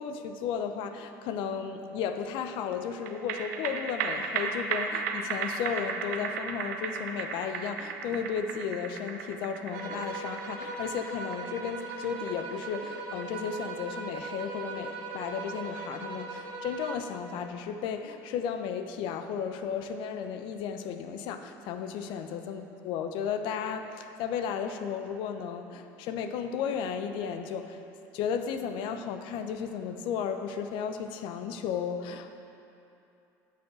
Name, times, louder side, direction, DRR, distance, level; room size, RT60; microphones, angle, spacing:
voice 1, 0.0-27.8 28.1-32.4, left 7 dB, 65° left, 8 dB, 0.7 m, -34 dB
sound 1, 3.1-15.7 16.1-16.2, right 5 dB, 85° right, 0.8 m, -36 dB
sound 2, 9.7-17.2, right 3 dB, 65° right, 1.3 m, -39 dB
9.9 x 5.6 x 6.8 m, 2.8 s
supercardioid pair, 90°, 9 cm